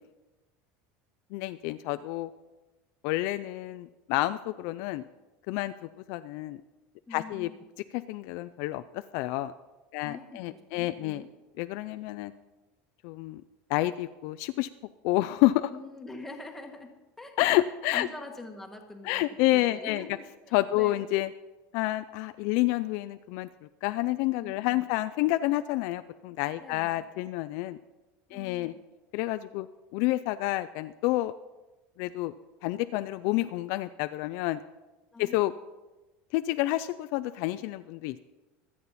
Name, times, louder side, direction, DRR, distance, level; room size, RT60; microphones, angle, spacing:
voice 1, 1.3-2.3 3.0-5.0 5.5-6.6 7.1-7.5 7.9-9.5 9.9-11.2 11.6-12.3 13.0-13.4 13.7-14.7 15.0-15.7 17.4-18.1 19.0-20.0 20.5-21.3 21.7-27.8 28.3-28.7 29.1-29.7 29.9-31.3 32.0-32.3 32.6-34.6 35.2-35.5 36.3-38.2, left 17 dB, 55° left, 11 dB, 0.4 m, -29 dB
voice 2, 7.1-7.6 10.0-11.3 15.7-17.3 17.9-19.3 19.5-21.1 24.4-24.9 26.6-27.0 28.3-28.8 35.1-35.4, left 2 dB, 5° left, 2 dB, 1.4 m, -45 dB
24.5 x 8.6 x 4.2 m, 1.1 s
cardioid pair, 170°, 6 cm